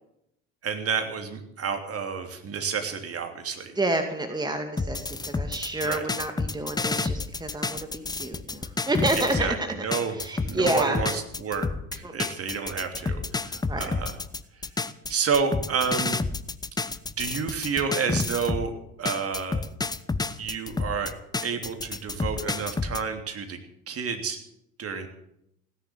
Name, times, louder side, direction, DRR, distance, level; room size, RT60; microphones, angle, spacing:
voice 1, 0.6-3.8 5.8-6.0 9.2-9.5 9.8-10.2 10.4-14.1 15.1-16.2 17.2-18.7 19.0-19.6 20.4-21.1 21.4-23.6 23.9-24.4 24.8-25.1, right 6 dB, 35° right, 6 dB, 3.0 m, -30 dB
voice 2, 3.8-9.7 10.1-11.0 12.0-12.2 13.7-13.9, right 2 dB, 10° right, 6 dB, 2.2 m, -29 dB
sound 1, 4.8-9.5 9.9-18.7 19.0-23.0, left 3 dB, 10° left, 0.8 m, -30 dB
17.0 x 10.5 x 7.8 m, 0.77 s
hypercardioid pair, 70°, 40 cm